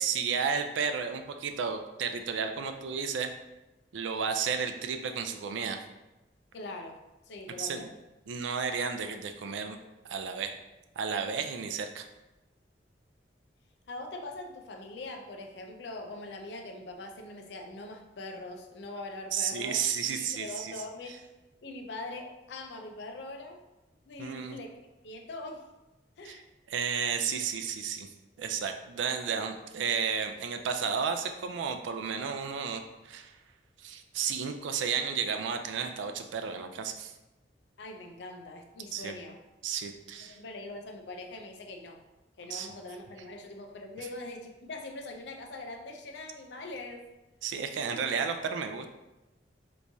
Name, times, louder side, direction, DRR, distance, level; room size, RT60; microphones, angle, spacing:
voice 1, 0.0-3.3 3.9-5.8 7.6-7.9 8.3-9.8 10.1-10.6 11.0-12.1 19.3-20.7 24.2-24.6 26.2-26.4 26.7-28.1 28.4-33.4 33.8-37.1 38.9-39.2 39.6-40.4 42.5-42.7 47.4-48.9, right 6 dB, 90° right, 6 dB, 0.4 m, -32 dB
voice 2, 6.5-7.0 7.3-7.9 13.9-19.8 20.1-21.2 21.6-23.6 24.1-24.7 25.0-25.7 26.2-26.4 37.8-39.4 40.3-42.0 42.4-47.1 47.7-48.0, left 2 dB, 70° left, 4 dB, 0.5 m, -42 dB
3.4 x 3.0 x 2.6 m, 1.0 s
head